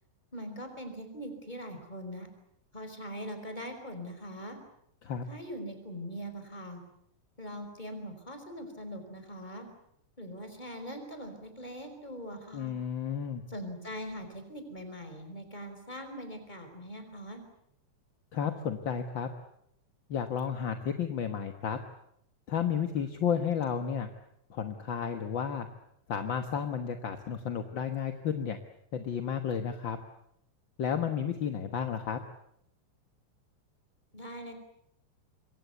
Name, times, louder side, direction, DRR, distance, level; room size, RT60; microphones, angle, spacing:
voice 1, 0.3-2.3 2.7-4.6 5.3-6.8 7.4-9.7 10.2-12.7 13.5-17.4 34.1-34.5, equal, 15° left, 7 dB, 4.8 m, -42 dB
voice 2, 12.5-13.4 18.3-19.3 20.1-21.8 22.5-24.1 24.5-25.7 26.1-28.6 28.9-30.0 30.8-32.2, left 7 dB, 50° left, 7 dB, 1.5 m, -32 dB
27.0 x 23.0 x 8.2 m, 0.73 s
omnidirectional pair, 3.6 m